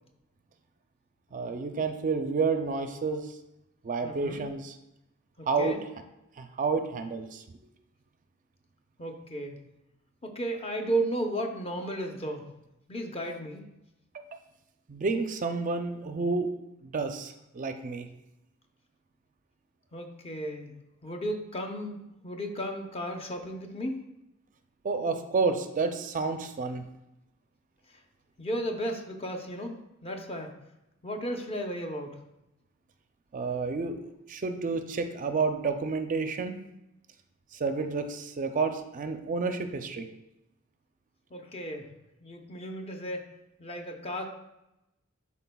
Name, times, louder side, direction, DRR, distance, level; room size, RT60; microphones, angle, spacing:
voice 1, 1.3-3.4 3.8-4.7 5.5-5.8 6.4-7.4 14.1-14.2 14.9-16.5 16.8-18.1 24.8-26.8 33.3-36.5 37.5-40.1, right 4 dB, 40° right, 7 dB, 0.4 m, -30 dB
voice 2, 4.0-4.4 5.4-5.8 9.0-9.6 10.2-12.5 12.9-13.7 19.9-20.7 21.0-24.0 28.4-30.6 31.0-32.2 41.3-41.9 42.2-43.3 43.6-44.3, right 1 dB, 30° left, 3 dB, 0.7 m, -34 dB
11.0 x 4.2 x 2.3 m, 0.89 s
head